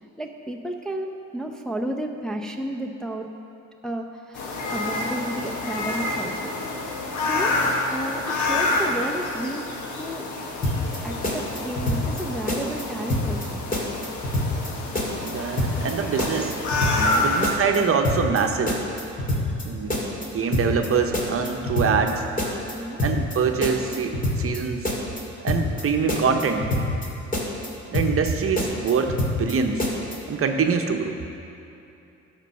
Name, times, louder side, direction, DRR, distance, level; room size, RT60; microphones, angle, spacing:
voice 1, 0.2-3.3 3.8-6.5 7.3-7.6 7.9-9.7 10.0-10.3 11.0-13.7 17.0-17.3 19.3-19.5 22.8-23.0, right 1 dB, ahead, 1 dB, 0.7 m, -32 dB
sound 1, 4.3-17.6, left 2 dB, 75° left, 1.4 m, -28 dB
sound 2, 10.6-11.0 11.2-12.2 12.5-12.8 13.1-13.5 13.7-14.7 14.9-15.3 15.6-15.9 16.2-17.2 17.4-17.8 18.0-18.4 18.7-19.6 19.9-20.3 20.5-20.9 21.1-22.1 22.4-22.7 23.0-23.4 23.6-24.6 24.8-25.2 25.5-25.8 26.1-27.1 27.3-27.7 27.9-28.3 28.6-29.5 29.8-30.2, left 1 dB, 25° left, 2.3 m, -25 dB
voice 2, 15.1-16.5 17.2-18.8 19.6-22.2 23.0-24.9 25.4-26.7 27.9-29.8 30.3-31.2, right 5 dB, 45° right, 4 dB, 0.9 m, -24 dB
12.5 x 5.3 x 6.4 m, 2.8 s
cardioid pair, 90°, 30 cm